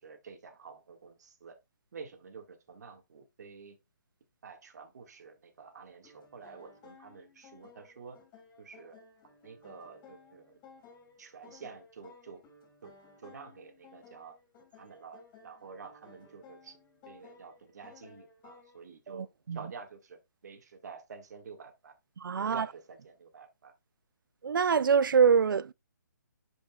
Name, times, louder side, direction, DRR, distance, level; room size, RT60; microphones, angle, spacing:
voice 1, 0.0-1.6 1.9-3.8 4.4-8.2 8.6-9.0 9.4-10.6 11.2-12.4 12.8-12.9 13.2-14.4 14.7-16.8 17.1-21.9 22.4-23.7, right 5 dB, 55° right, 1.8 m, -49 dB
sound 1, 6.0-18.8, left 4 dB, 20° left, 2.8 m, -57 dB
voice 2, 19.1-19.6 22.2-22.7 24.4-25.7, right 6 dB, 90° right, 0.4 m, -25 dB
11.0 x 5.1 x 2.3 m
hypercardioid pair, 165°, 11 cm